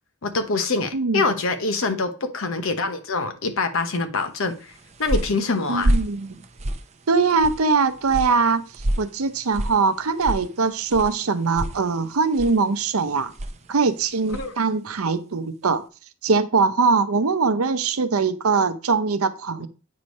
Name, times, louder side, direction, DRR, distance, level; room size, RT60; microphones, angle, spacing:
voice 1, 0.2-4.7 5.0-5.9 14.3-14.5, left 3 dB, 65° left, 1.0 m, -25 dB
voice 2, 0.9-1.3 5.7-6.4 7.1-8.6 9.0-13.3 13.7-15.8 16.2-19.7, right 4 dB, 80° right, 0.7 m, -22 dB
sound 1, 4.5-14.6, right 1 dB, 30° right, 0.6 m, -30 dB
8.7 x 3.1 x 5.3 m
head